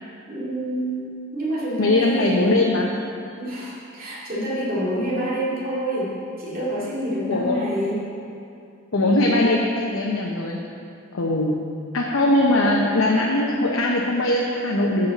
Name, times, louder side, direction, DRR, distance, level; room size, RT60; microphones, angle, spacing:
voice 1, 0.3-2.5 3.4-8.0, right 1 dB, 45° right, -7 dB, 2.3 m, -27 dB
voice 2, 1.8-2.9 7.3-7.6 8.9-10.6 11.1-11.6 11.9-15.1, left 1 dB, 90° left, -2 dB, 0.8 m, -20 dB
13.5 x 5.5 x 4.1 m, 2.5 s
head